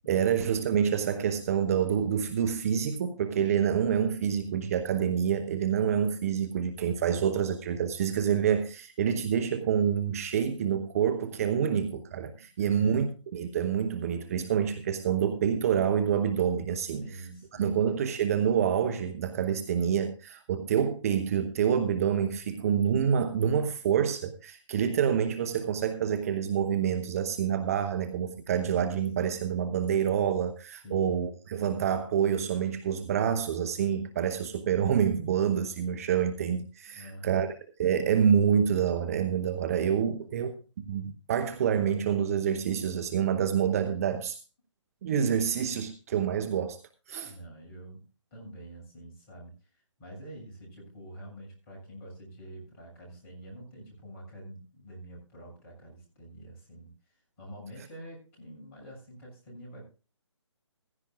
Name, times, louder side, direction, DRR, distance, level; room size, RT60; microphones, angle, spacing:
voice 1, 0.1-17.1 17.6-37.5 37.8-40.5 40.9-44.4 45.0-46.8 47.1-47.3, right 8 dB, 30° right, 0.8 m, -27 dB
voice 2, 12.6-13.0 17.0-17.8 30.8-31.1 36.9-37.5 39.8-40.6 47.2-59.8, right 1 dB, 30° left, 7.1 m, -47 dB
15.5 x 14.5 x 2.3 m
figure-of-eight pair, 145°, 16 cm